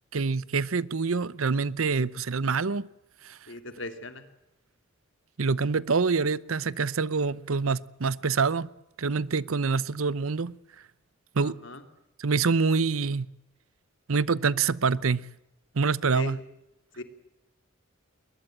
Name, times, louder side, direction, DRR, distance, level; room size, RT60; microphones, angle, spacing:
voice 1, 0.1-2.9 3.2-3.4 5.4-8.7 9.0-10.6 11.3-11.6 12.2-13.3 14.1-15.3 15.7-16.4, right 4 dB, 90° right, 0.8 m, -26 dB
voice 2, 3.5-4.2 11.4-11.8 16.1-16.3 17.0-17.1, left 2 dB, 60° left, 2.9 m, -38 dB
21.5 x 21.0 x 8.9 m
head